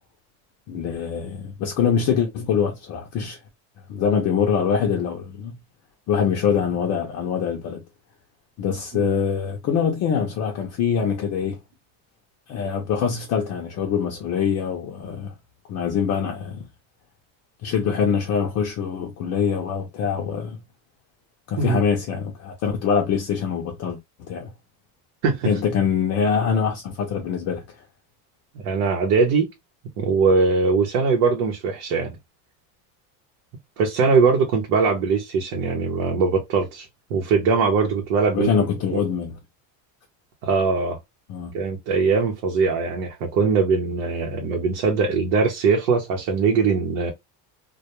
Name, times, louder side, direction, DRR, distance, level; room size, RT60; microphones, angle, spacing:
voice 1, 0.7-3.4 3.9-5.5 6.1-7.8 8.6-11.6 12.5-15.3 15.7-16.6 17.6-20.6 21.5-24.5 25.4-27.6 38.3-39.3 41.3-41.5, left 7 dB, 40° left, 0.5 m, -24 dB
voice 2, 28.5-29.5 30.0-32.2 33.8-38.5 38.9-39.0 40.4-41.0 41.5-47.1, right 4 dB, 90° right, 0.9 m, -21 dB
2.3 x 2.2 x 2.8 m
cardioid pair, 170°, 42 cm